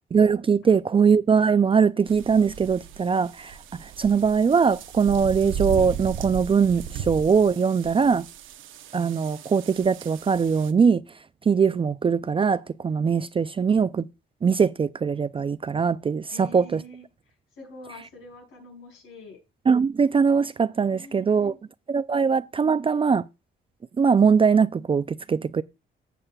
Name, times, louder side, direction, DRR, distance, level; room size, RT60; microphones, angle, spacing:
voice 1, 0.1-8.3 8.9-11.0 11.5-14.0 14.4-16.8 19.7-21.5 21.9-23.3 24.0-25.6, right 6 dB, 25° right, 0.4 m, -21 dB
sound 1, 2.1-10.7, right 8 dB, 85° right, 0.8 m, -36 dB
voice 2, 16.3-17.0 17.6-19.4 20.9-21.6 22.1-22.3, left 1 dB, 90° left, 5.7 m, -45 dB
15.0 x 7.3 x 2.3 m
cardioid pair, 90°, 20 cm